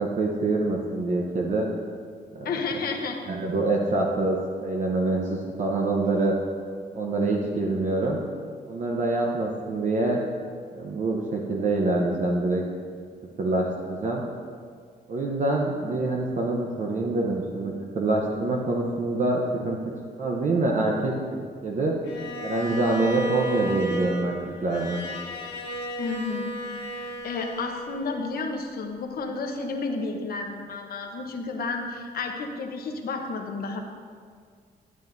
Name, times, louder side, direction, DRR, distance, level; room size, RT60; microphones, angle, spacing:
voice 1, 0.0-1.7 2.3-2.6 3.3-6.3 6.9-8.2 8.7-10.2 10.7-12.6 13.4-14.2 15.1-19.8 20.2-21.9 22.4-25.0, right 2 dB, 45° right, -1 dB, 0.8 m, -25 dB
voice 2, 2.4-3.2 26.0-33.8, left 4 dB, 60° left, 3 dB, 1.0 m, -31 dB
Bowed string instrument, 22.0-28.3, equal, 85° left, 1.2 m, -33 dB
12.0 x 8.8 x 2.7 m, 2.1 s
cardioid pair, 145°, 17 cm